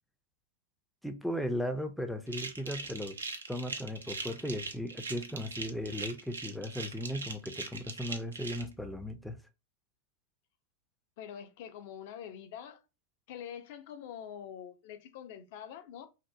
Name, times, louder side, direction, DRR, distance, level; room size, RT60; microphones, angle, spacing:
voice 1, 1.0-3.2 3.5-9.4, equal, ahead, 0.4 m, -36 dB
sound 1, 2.3-8.6, right 3 dB, 85° right, 0.5 m, -40 dB
voice 2, 11.2-12.8 13.3-16.1, left 9 dB, 55° left, 0.5 m, -45 dB
2.7 x 2.0 x 2.3 m
hypercardioid pair, 95°, 0 cm